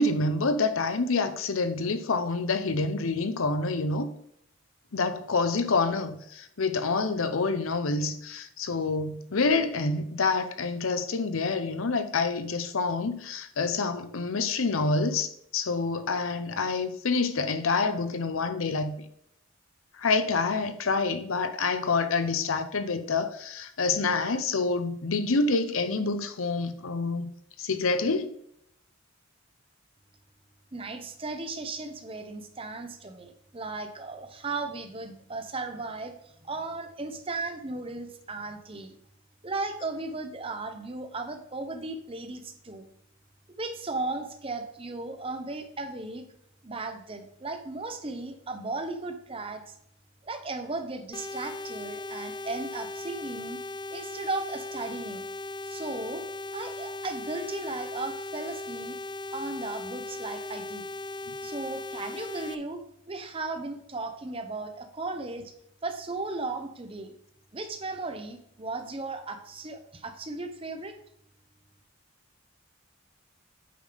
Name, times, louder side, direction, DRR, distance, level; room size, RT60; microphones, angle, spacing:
voice 1, 0.0-4.1 4.9-19.0 20.0-27.3 27.6-28.3, left 3 dB, 75° left, 0.7 m, -27 dB
voice 2, 30.7-36.1 36.4-39.0 39.4-42.9 43.6-46.2 46.6-49.7 50.2-53.6 53.9-55.2 55.6-56.2 56.5-59.0 59.3-60.9 61.4-62.8 63.1-65.5 65.8-67.1 67.5-70.9, right 3 dB, 25° right, 0.7 m, -36 dB
sound 1, 51.1-62.5, left 2 dB, 20° left, 0.3 m, -38 dB
8.7 x 5.4 x 3.5 m
head